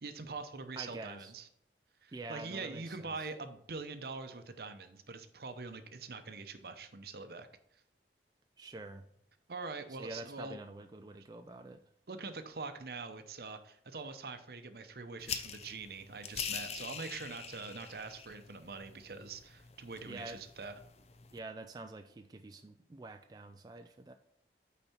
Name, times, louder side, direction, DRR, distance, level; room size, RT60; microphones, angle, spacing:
voice 1, 0.0-1.5 2.0-7.5 9.5-10.6 12.1-20.7, right 4 dB, 60° right, 9 dB, 0.8 m, -44 dB
voice 2, 0.8-1.3 2.1-3.1 8.6-9.1 10.0-11.8 20.1-20.4 21.3-24.1, right 2 dB, 20° right, 6 dB, 0.3 m, -46 dB
sound 1, 15.2-21.4, left 7 dB, 35° left, 0.5 m, -44 dB
9.0 x 4.2 x 4.3 m, 0.74 s
head